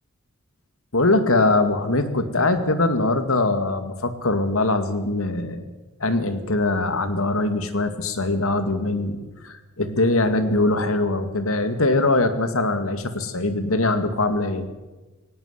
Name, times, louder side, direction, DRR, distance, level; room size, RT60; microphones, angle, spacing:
voice 1, 0.9-5.6 6.0-14.7, left 2 dB, 85° left, 10 dB, 2.2 m, -22 dB
18.0 x 18.0 x 8.3 m, 1.2 s
head